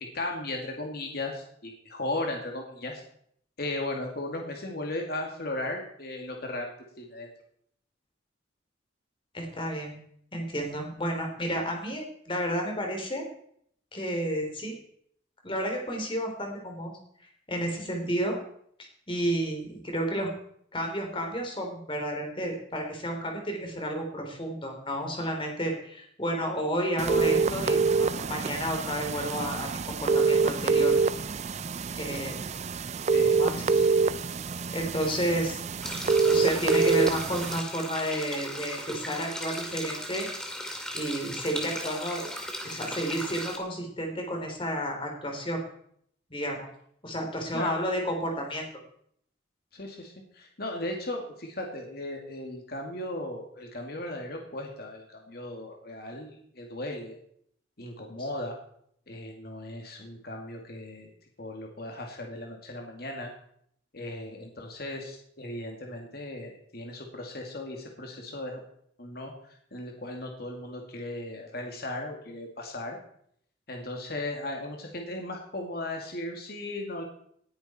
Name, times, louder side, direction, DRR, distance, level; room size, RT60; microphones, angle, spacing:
voice 1, 0.1-3.0 3.6-6.7 7.0-7.3 33.1-34.0 35.3-35.4 47.5-47.8 49.7-57.2 57.8-58.6 59.1-61.1 61.4-63.3 63.9-68.6 69.0-73.0 73.7-77.0, left 1 dB, 55° left, 1 dB, 2.4 m, -36 dB
voice 2, 9.3-10.0 10.3-13.2 13.9-14.8 15.4-16.9 17.5-18.4 19.1-20.3 20.7-27.8 28.3-29.7 30.0-30.9 32.0-32.4 33.3-33.9 34.7-35.6 35.9-40.3 40.9-42.3 42.6-45.6 46.3-46.7 47.0-48.7, equal, 25° left, 2 dB, 3.4 m, -31 dB
sound 1, 27.0-37.6, right 4 dB, 35° right, 0.4 m, -26 dB
sound 2, 35.8-43.6, equal, 5° left, 2.1 m, -37 dB
19.0 x 10.0 x 4.3 m, 0.68 s
head